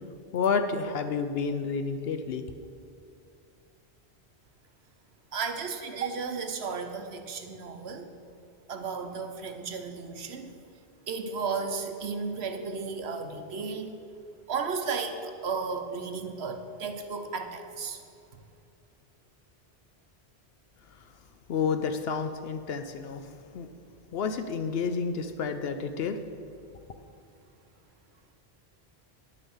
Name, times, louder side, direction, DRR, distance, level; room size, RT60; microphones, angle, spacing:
voice 1, 0.3-2.5 21.5-23.7 24.1-26.2, left 5 dB, 70° left, 8 dB, 0.8 m, -30 dB
voice 2, 5.3-8.1 8.7-10.5 11.1-13.9 14.5-18.0, right 5 dB, 75° right, 6 dB, 1.1 m, -34 dB
10.0 x 6.8 x 7.2 m, 2.5 s
omnidirectional pair, 1.1 m